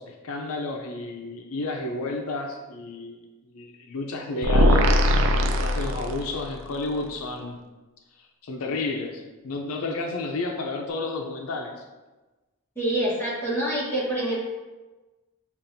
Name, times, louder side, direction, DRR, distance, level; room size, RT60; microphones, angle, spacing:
voice 1, 0.0-3.2 3.4-5.0 5.5-7.6 8.4-11.8, left 3 dB, 75° left, 2 dB, 0.5 m, -31 dB
sound 1, 4.4-6.5, left 1 dB, 55° right, 0.3 m, -20 dB
voice 2, 12.8-14.3, right 1 dB, 10° left, -7 dB, 1.1 m, -26 dB
7.2 x 2.4 x 2.6 m, 1.2 s
head